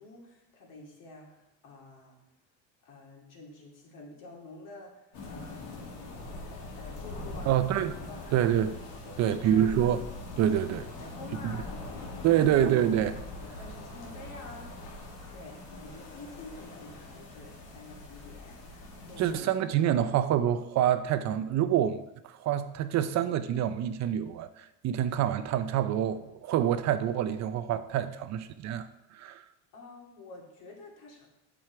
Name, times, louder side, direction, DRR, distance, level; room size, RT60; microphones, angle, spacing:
voice 1, 0.0-2.2 2.8-5.9 6.5-7.7 8.0-8.6 9.0-9.9 11.0-11.7 12.3-12.5 13.4-19.4 29.7-31.3, left 2 dB, 65° left, 2.6 m, -49 dB
sound 1, 5.1-19.3, left 2 dB, 85° left, 2.2 m, -42 dB
voice 2, 7.5-7.9 8.3-8.7 9.2-10.0 10.4-10.9 11.4-11.5 12.2-13.2 19.2-29.4, right 10 dB, 50° right, 0.6 m, -27 dB
7.6 x 6.3 x 4.6 m
cardioid pair, 125°, 35 cm